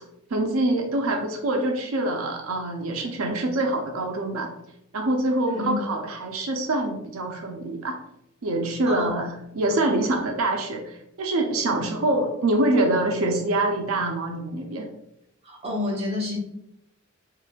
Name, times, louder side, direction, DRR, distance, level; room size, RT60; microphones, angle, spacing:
voice 1, 0.3-4.5 4.9-8.0 8.4-14.9, right 2 dB, 80° right, 3 dB, 0.5 m, -25 dB
voice 2, 8.9-9.2 11.6-11.8 15.4-16.4, left 2 dB, 30° right, -3 dB, 0.8 m, -29 dB
4.7 x 2.5 x 2.3 m, 0.80 s
head